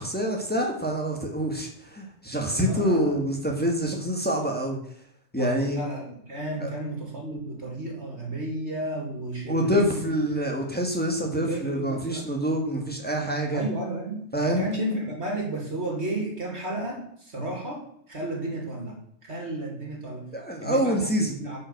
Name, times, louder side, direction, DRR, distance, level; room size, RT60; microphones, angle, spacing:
voice 1, 0.0-4.8 5.3-5.8 6.6-6.7 9.5-13.6 14.3-14.6 20.3-21.3, equal, 5° left, 1 dB, 1.7 m, -26 dB
voice 2, 2.5-3.2 5.4-10.1 11.2-12.3 13.5-19.0 19.2-20.3 20.6-21.6, right 1 dB, 55° right, 0 dB, 2.9 m, -33 dB
11.0 x 5.7 x 6.7 m, 0.68 s
omnidirectional pair, 1.4 m